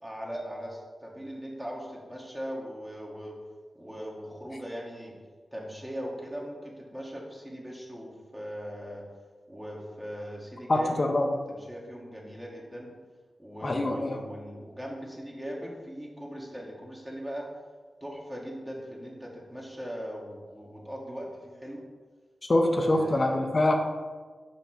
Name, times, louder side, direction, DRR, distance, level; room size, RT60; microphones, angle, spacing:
voice 1, 0.0-3.4 3.7-5.1 5.5-9.0 9.5-11.0 11.5-12.9 13.4-17.5 18.0-21.8 22.7-23.4, equal, 10° right, -3 dB, 1.4 m, -40 dB
voice 2, 10.7-11.3 13.6-14.2 22.5-23.7, left 1 dB, 45° left, 3 dB, 0.7 m, -24 dB
5.8 x 5.2 x 4.4 m, 1.4 s
wide cardioid pair, 70°, 0 cm